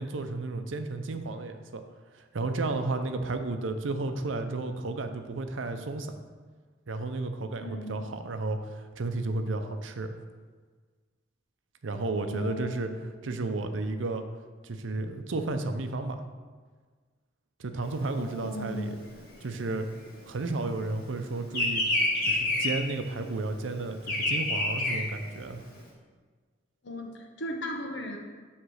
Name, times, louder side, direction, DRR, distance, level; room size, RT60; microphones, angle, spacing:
voice 1, 0.0-1.8 2.3-6.1 6.9-10.1 11.8-12.9 13.2-14.2 14.6-16.2 17.6-19.0 19.4-19.9 20.3-21.8 22.3-25.6, right 2 dB, 90° right, 7 dB, 0.6 m, -32 dB
voice 2, 7.6-8.0 12.2-13.0 18.2-18.9 26.8-28.2, equal, 70° left, 2 dB, 1.0 m, -37 dB
Bird vocalization bird call bird song, 17.9-20.8 21.1-25.8, left 1 dB, 50° left, 1.9 m, -29 dB
7.9 x 3.3 x 6.3 m, 1.5 s
head